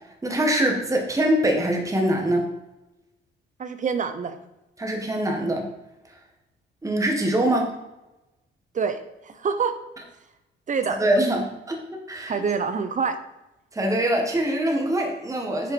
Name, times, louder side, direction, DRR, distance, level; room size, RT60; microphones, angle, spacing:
voice 1, 0.2-2.5 4.8-5.7 6.8-7.7 11.0-11.8 12.1-12.4 13.7-15.7, right 1 dB, 15° right, 1 dB, 1.5 m, -23 dB
voice 2, 3.6-4.3 8.7-9.8 10.7-11.0 12.3-13.2, right 5 dB, 40° right, 10 dB, 0.8 m, -26 dB
6.3 x 5.3 x 4.4 m, 0.96 s
cardioid pair, 90°, 20 cm